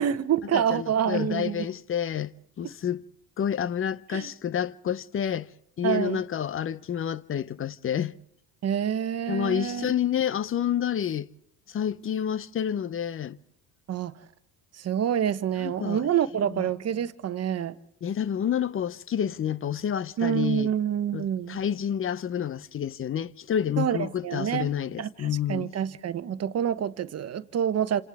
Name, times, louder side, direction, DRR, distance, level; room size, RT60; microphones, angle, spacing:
voice 1, 0.0-1.7 4.1-4.3 5.8-6.2 8.6-9.9 13.9-14.1 14.7-17.8 20.2-21.6 23.8-24.7 25.0-28.0, right 9 dB, 40° right, 1.1 m, -27 dB
voice 2, 0.5-3.0 3.4-5.5 5.8-8.1 9.3-11.3 11.7-13.4 15.6-16.0 16.5-16.7 18.0-20.7 21.1-25.7, left 9 dB, 35° left, 0.7 m, -29 dB
29.0 x 27.0 x 3.6 m
supercardioid pair, 100°, 38 cm